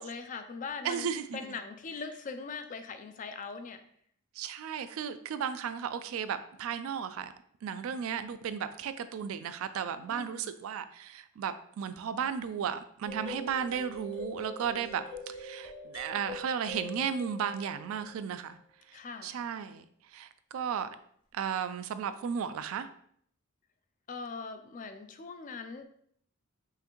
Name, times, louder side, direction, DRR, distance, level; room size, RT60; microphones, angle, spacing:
voice 1, 0.0-1.1 1.3-3.8 10.1-10.5 18.9-19.4 24.1-25.9, left 4 dB, 35° left, 0.3 m, -41 dB
voice 2, 0.8-1.6 4.4-7.3 7.6-18.6 18.9-20.9 21.3-22.9, right 7 dB, 70° right, 0.3 m, -35 dB
sound 1, 13.0-18.2, left 1 dB, 90° left, 1.2 m, -43 dB
5.6 x 2.5 x 2.9 m
head